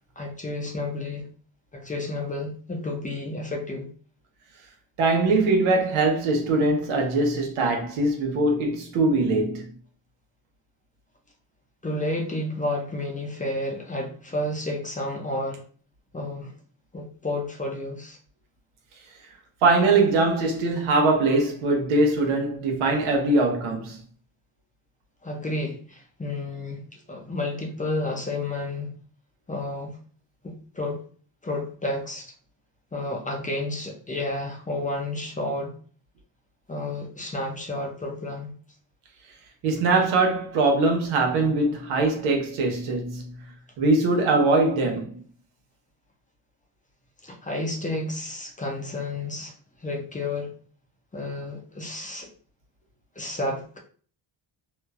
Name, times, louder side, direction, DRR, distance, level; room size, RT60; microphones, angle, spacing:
voice 1, 0.2-1.3 1.7-3.9 11.8-15.6 16.1-16.5 16.9-18.2 25.2-28.9 29.5-30.0 30.4-31.0 31.4-32.3 32.9-35.8 36.7-38.5 47.2-49.5 49.8-50.5 51.1-52.3 53.2-53.8, left 2 dB, 15° left, 0.6 m, -31 dB
voice 2, 5.0-9.7 19.6-24.0 39.6-43.3 43.8-45.2, right 2 dB, 85° right, 0.9 m, -22 dB
3.0 x 2.0 x 2.3 m
cardioid pair, 90°, 48 cm